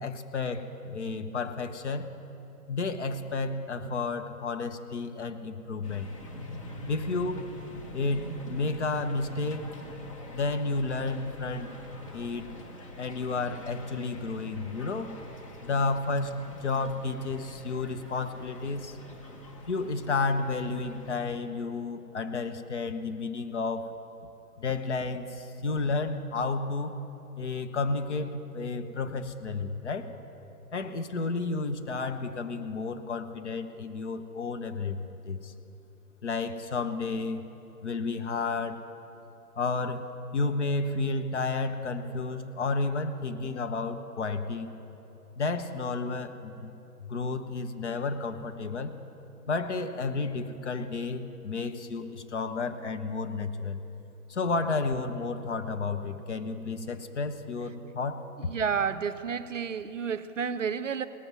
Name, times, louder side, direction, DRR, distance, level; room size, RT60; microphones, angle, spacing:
voice 1, 0.0-2.1 2.7-6.1 6.9-7.5 7.9-9.7 10.3-11.7 12.1-12.5 13.0-15.1 15.6-19.0 19.7-23.9 24.6-27.0 27.4-30.1 30.7-35.5 36.2-37.4 37.8-38.8 39.6-44.7 45.4-46.7 47.0-48.9 49.5-53.8 54.3-58.3, left 3 dB, 50° left, 9 dB, 0.8 m, -31 dB
sound 1, 5.8-21.4, equal, 20° left, 0.8 m, -45 dB
voice 2, 58.4-61.1, right 6 dB, 55° right, 12 dB, 0.6 m, -31 dB
18.0 x 7.9 x 7.5 m, 2.9 s
figure-of-eight pair, 135°, 47 cm